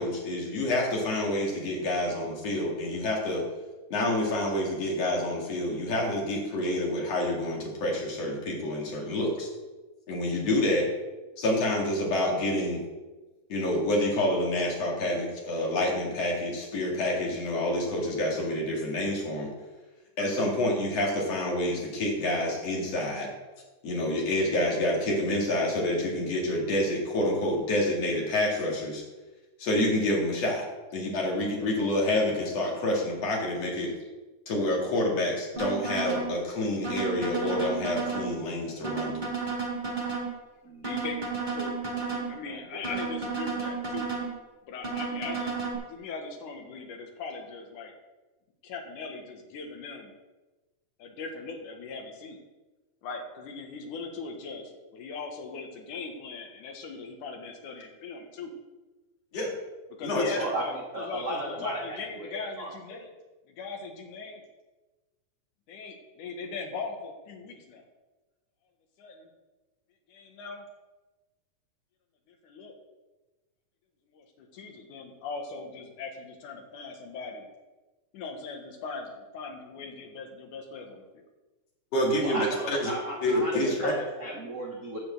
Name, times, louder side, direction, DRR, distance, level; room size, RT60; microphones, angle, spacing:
voice 1, 0.0-3.4 3.9-9.5 10.1-10.9 11.4-12.8 13.5-19.5 20.2-23.3 23.8-29.0 29.6-30.6 30.9-33.9 34.5-39.3 59.3-59.5 60.0-60.2 81.9-82.9 83.2-83.9, left 1 dB, 55° left, -2 dB, 3.2 m, -28 dB
sound 1, 35.6-36.3 36.8-38.3 38.8-40.3 40.8-42.3 42.8-44.3 44.8-45.7, right 4 dB, 15° right, 1.9 m, -32 dB
voice 2, 40.8-41.2 41.5-44.1 44.7-45.6 45.9-47.9 48.6-50.1 51.0-52.4 53.0-58.5 60.0-63.1 63.5-64.4 65.7-67.8 69.0-69.3 70.1-70.7 72.3-72.7 74.1-77.5 78.1-81.2, left 4 dB, 80° left, 3 dB, 2.8 m, -39 dB
voice 3, 60.3-63.1 82.2-85.0, right 1 dB, 60° right, -1 dB, 0.7 m, -35 dB
10.5 x 5.1 x 7.7 m, 1.2 s
omnidirectional pair, 3.5 m